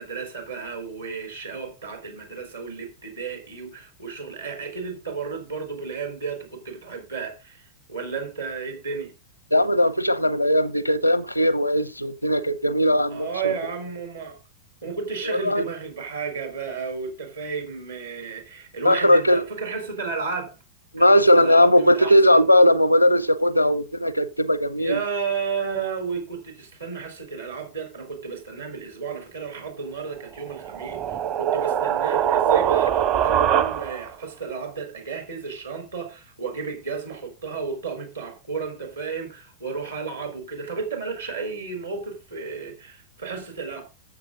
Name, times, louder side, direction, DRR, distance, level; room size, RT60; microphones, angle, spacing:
voice 1, 0.0-7.6 7.9-9.1 13.1-14.4 14.8-20.6 21.0-22.5 24.8-43.8, right 5 dB, 75° right, 4.1 m, -33 dB
voice 2, 9.5-13.3 15.2-15.6 18.8-19.4 20.9-25.0, left 1 dB, 90° left, 0.8 m, -18 dB
sound 1, 30.4-34.2, right 10 dB, 40° right, 0.9 m, -22 dB
13.5 x 7.7 x 3.8 m
figure-of-eight pair, 90°, 0 cm